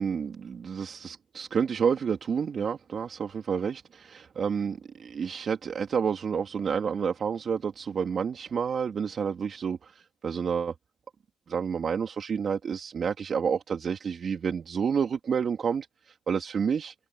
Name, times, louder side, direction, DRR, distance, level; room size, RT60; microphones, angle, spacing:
voice 1, 0.0-10.7 11.5-16.9, right 6 dB, 45° right, 2.8 m, -29 dB
cardioid pair, 90°, 0 cm